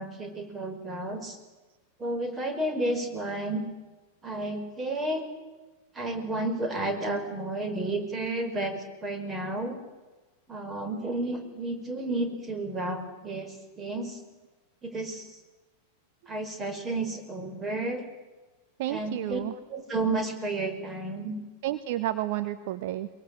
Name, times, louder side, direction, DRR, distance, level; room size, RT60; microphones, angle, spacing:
voice 1, 0.0-1.4 2.0-3.6 4.2-5.3 6.0-9.8 10.5-14.2 14.8-15.3 16.3-18.0 18.9-19.4 19.7-21.4, right 2 dB, 20° right, 7 dB, 5.1 m, -32 dB
voice 2, 18.8-19.6 21.6-23.1, right 14 dB, 50° right, 11 dB, 1.1 m, -31 dB
23.0 x 23.0 x 8.8 m, 1.2 s
figure-of-eight pair, 90°, 0 cm